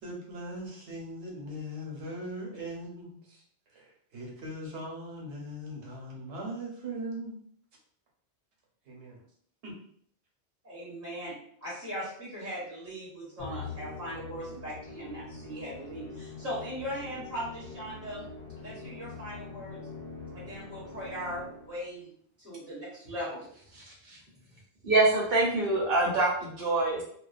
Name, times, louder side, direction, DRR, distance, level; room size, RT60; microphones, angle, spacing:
voice 1, 0.0-3.4 3.7-7.4 8.8-9.2 9.6-9.7, right 1 dB, 90° right, -2 dB, 1.1 m, -40 dB
voice 2, 10.6-18.3 18.6-19.8 20.3-22.1 22.4-23.4, equal, 15° right, -8 dB, 1.1 m, -39 dB
Musical instrument, 13.4-21.9, left 4 dB, 60° left, 0.8 m, -44 dB
voice 3, 23.7-24.2 24.8-27.0, right 2 dB, 60° right, -3 dB, 0.9 m, -25 dB
2.3 x 2.3 x 2.4 m, 0.62 s
omnidirectional pair, 1.1 m